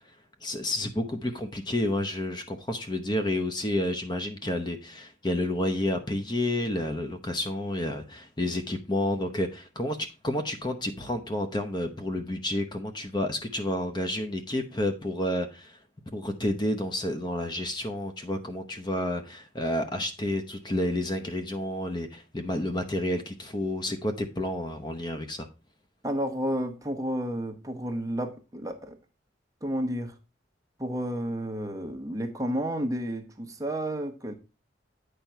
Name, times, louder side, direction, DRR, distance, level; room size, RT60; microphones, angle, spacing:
voice 1, 0.4-15.8 16.1-25.5, left 1 dB, 25° left, 0.8 m, -30 dB
voice 2, 26.0-29.0 29.6-30.1 30.8-34.3, equal, 20° right, 1.0 m, -31 dB
8.9 x 5.2 x 4.5 m
head